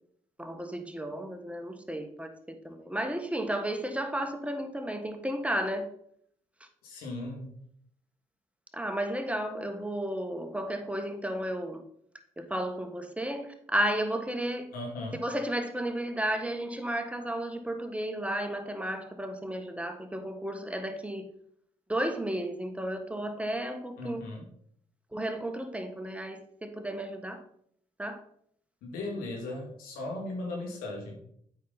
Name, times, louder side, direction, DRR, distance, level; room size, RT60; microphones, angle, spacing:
voice 1, 0.4-5.9 8.7-11.8 12.4-14.7 15.2-21.3 21.9-24.2 25.1-27.4 28.0-28.2, right 1 dB, 10° right, 1.3 m, -33 dB
voice 2, 6.8-7.5 14.7-15.2 24.0-24.4 28.8-31.2, left 2 dB, 80° left, 2.1 m, -37 dB
8.3 x 5.7 x 4.0 m
supercardioid pair, 55°, 15 cm